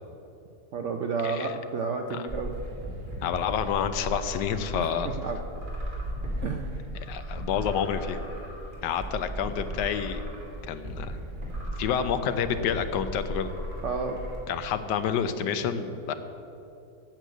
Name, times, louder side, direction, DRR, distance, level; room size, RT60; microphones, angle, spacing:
voice 1, 0.7-2.6 4.7-4.9 5.2-5.4 6.4-6.9 13.8-14.2, right 4 dB, 65° right, 4 dB, 0.7 m, -31 dB
sound 1, 2.3-14.4, right 1 dB, 30° right, 2.3 m, -36 dB
voice 2, 3.2-5.1 7.1-8.2 8.8-10.2 10.6-11.2 11.8-13.5 14.5-16.1, left 8 dB, 80° left, 10 dB, 1.3 m, -29 dB
9.1 x 7.8 x 7.7 m, 2.8 s
omnidirectional pair, 1.9 m